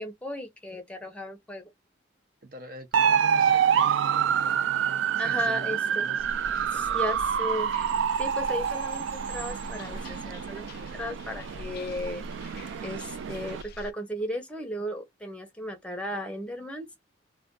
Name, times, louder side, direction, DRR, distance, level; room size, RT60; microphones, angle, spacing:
voice 1, 0.0-1.6 5.2-6.1 6.7-7.7 8.2-12.2 12.8-16.9, left 1 dB, 5° left, 0.7 m, -35 dB
voice 2, 2.4-4.7 5.2-7.2, right 2 dB, 50° right, 0.7 m, -45 dB
sound 1, 2.9-13.6, right 8 dB, 85° right, 0.3 m, -27 dB
sound 2, 6.2-13.9, left 1 dB, 55° left, 0.3 m, -43 dB
2.5 x 2.2 x 3.6 m
head